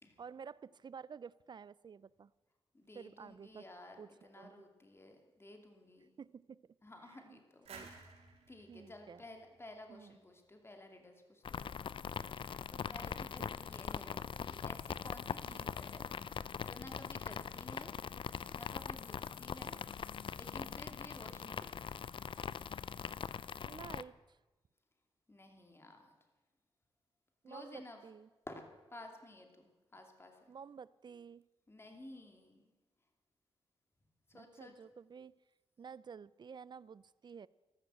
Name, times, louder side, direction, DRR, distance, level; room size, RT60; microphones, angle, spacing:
voice 1, 0.2-2.3 2.9-3.7 4.0-4.7 6.2-6.6 7.1-7.4 7.7-7.9 8.7-9.2 9.9-10.2 13.4-13.5 15.4-15.7 23.6-24.4 27.4-28.3 30.5-31.4 34.3-35.3 35.8-37.5, right 6 dB, 45° right, 20 dB, 0.5 m, -51 dB
voice 2, 2.7-6.1 6.8-8.1 8.5-12.0 12.3-17.9 18.5-19.8 20.3-22.1 25.3-26.1 27.5-28.0 28.5-28.6 28.9-30.5 31.7-32.6 34.3-34.7, left 1 dB, 25° left, 4 dB, 2.6 m, -54 dB
sound 1, 7.7-10.4, right 4 dB, 85° right, 3.2 m, -56 dB
sound 2, 11.4-24.0, left 7 dB, 55° left, 0.5 m, -42 dB
13.5 x 13.0 x 7.7 m, 1.2 s
cardioid pair, 70°, 10 cm